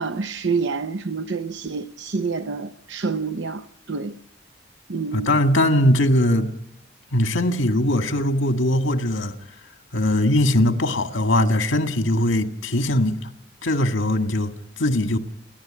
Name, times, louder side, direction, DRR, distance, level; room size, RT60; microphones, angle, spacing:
voice 1, 0.0-4.2 4.9-5.3, right 4 dB, 70° right, 0.8 m, -27 dB
voice 2, 5.1-6.5 7.1-9.4 9.9-13.2 13.6-15.2, left 1 dB, 85° left, 1.9 m, -20 dB
29.5 x 11.0 x 8.8 m
head